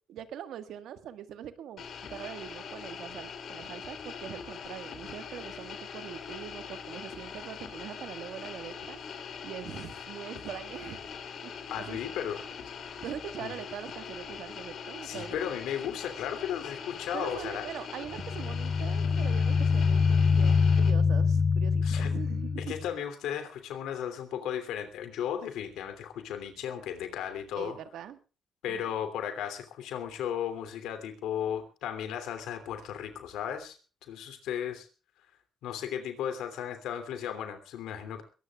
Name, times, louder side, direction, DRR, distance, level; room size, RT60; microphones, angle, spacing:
voice 1, 0.0-9.0 9.4-11.1 11.4-11.5 11.8-12.0 13.0-15.5 17.1-22.7 27.5-28.2 28.7-28.8, right 10 dB, 80° right, 9 dB, 1.6 m, -42 dB
sound 1, 1.8-20.9, left 6 dB, 65° left, 3.4 m, -42 dB
voice 2, 11.7-12.4 13.4-13.5 15.0-17.7 21.8-22.1 22.6-27.8 28.6-34.9 35.6-38.2, left 9 dB, 85° left, 9 dB, 3.0 m, -35 dB
sound 2, 18.1-22.9, left 5 dB, 35° left, 0.7 m, -25 dB
22.5 x 19.0 x 2.4 m, 0.34 s
cardioid pair, 90°, 0 cm